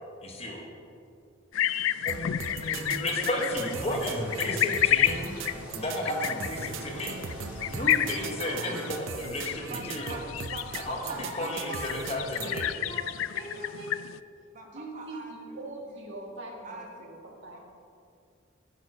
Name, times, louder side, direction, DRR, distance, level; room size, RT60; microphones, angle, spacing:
voice 1, 0.2-0.7 2.0-2.3 2.6-5.3 5.7-7.2 7.7-10.2 10.9-11.0 11.3-12.7, left 1 dB, 30° left, 1 dB, 1.3 m, -33 dB
sound 1, 1.5-14.2, left 11 dB, 90° left, 0.3 m, -31 dB
sound 2, 2.1-12.7, right 5 dB, 85° right, 0.5 m, -40 dB
sound 3, 3.5-9.0, equal, 5° right, 2.0 m, -44 dB
voice 2, 8.4-8.8 11.1-12.5 12.8-14.0 14.7-17.6, right 1 dB, 70° right, 0 dB, 1.6 m, -42 dB
voice 3, 9.7-11.3 13.5-13.7 14.5-15.6 16.2-17.1 17.5-17.6, right 3 dB, 40° right, 2 dB, 1.2 m, -44 dB
11.5 x 6.8 x 4.9 m, 2.4 s
head